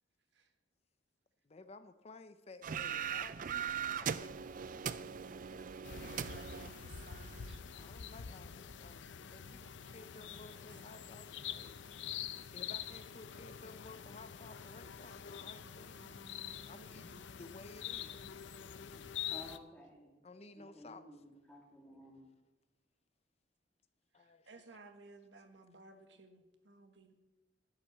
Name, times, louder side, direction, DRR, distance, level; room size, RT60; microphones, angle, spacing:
voice 1, 1.4-4.5 4.8-5.0 5.6-5.8 7.8-16.0 16.7-18.3 18.8-19.1 20.2-21.1 21.9-22.0 24.1-24.5, left 3 dB, 35° left, 11 dB, 0.6 m, -55 dB
sound 1, 2.6-7.5, right 7 dB, 45° right, 0.4 m, -40 dB
sound 2, 5.8-19.6, left 9 dB, 75° left, 0.6 m, -46 dB
voice 2, 6.1-8.2 9.3-11.1 15.8-17.2 24.1-27.1, right 2 dB, 70° right, 6 dB, 1.5 m, -59 dB
voice 3, 19.3-20.2 20.5-22.3, left 1 dB, 5° left, -2 dB, 2.8 m, -54 dB
11.5 x 7.7 x 8.0 m, 1.1 s
head